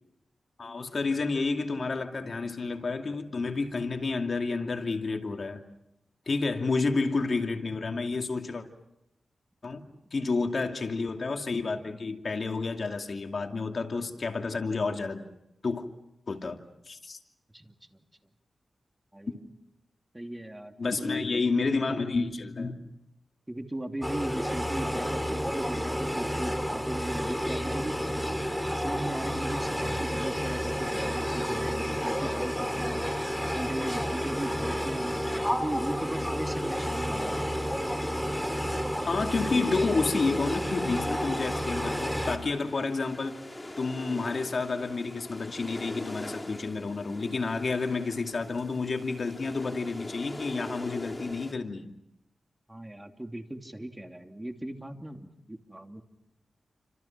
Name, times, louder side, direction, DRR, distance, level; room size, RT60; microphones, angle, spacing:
voice 1, 0.6-5.6 6.3-8.7 9.6-9.8 10.1-15.2 15.6-15.9 16.3-16.6 16.9-17.2 20.8-22.7 39.0-43.4 43.8-51.9, left 3 dB, 55° left, 4 dB, 2.6 m, -30 dB
voice 2, 19.1-19.4 20.1-21.4 23.5-28.4 28.8-33.1 33.5-37.5 52.7-56.0, right 1 dB, 15° right, 4 dB, 2.9 m, -38 dB
sound 1, 24.0-42.4, equal, 5° left, 3.2 m, -30 dB
sound 2, 39.4-51.5, left 1 dB, 20° left, 3.3 m, -43 dB
30.0 x 26.5 x 6.0 m, 0.83 s
cardioid pair, 70°, 0 cm